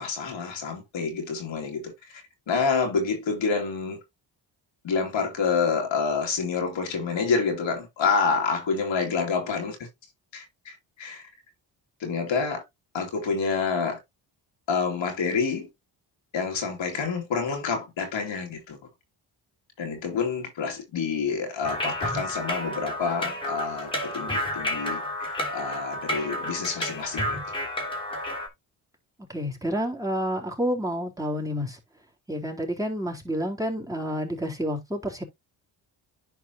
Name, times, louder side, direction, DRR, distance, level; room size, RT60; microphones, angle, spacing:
voice 1, 0.0-1.9 2.5-4.0 4.8-9.8 10.3-11.2 12.0-12.6 12.9-14.0 14.7-15.7 16.3-18.8 19.8-27.4, left 5 dB, 70° left, 2.8 m, -28 dB
sound 1, 21.6-28.5, left 1 dB, 10° left, 3.1 m, -31 dB
voice 2, 29.3-31.8 32.3-35.2, equal, 5° right, 3.8 m, -29 dB
11.0 x 4.7 x 2.8 m
cardioid pair, 65°, 47 cm